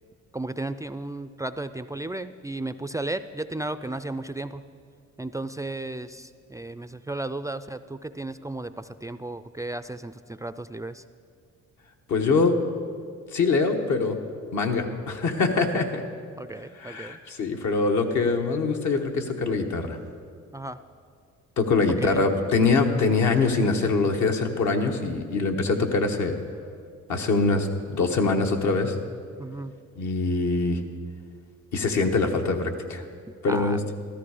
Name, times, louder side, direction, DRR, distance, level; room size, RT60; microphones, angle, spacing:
voice 1, 0.3-4.6 5.2-11.0 16.4-17.2 20.5-20.8 22.0-22.3 29.4-29.7 33.5-33.9, right 2 dB, 10° right, 12 dB, 0.3 m, -34 dB
voice 2, 12.1-12.5 13.3-14.2 14.5-16.0 16.7-20.0 21.6-26.4 27.1-28.9 30.0-30.8 31.7-33.0 33.4-33.8, left 3 dB, 70° left, 3 dB, 1.4 m, -23 dB
13.5 x 13.5 x 5.0 m, 2.2 s
cardioid pair, 90°, 30 cm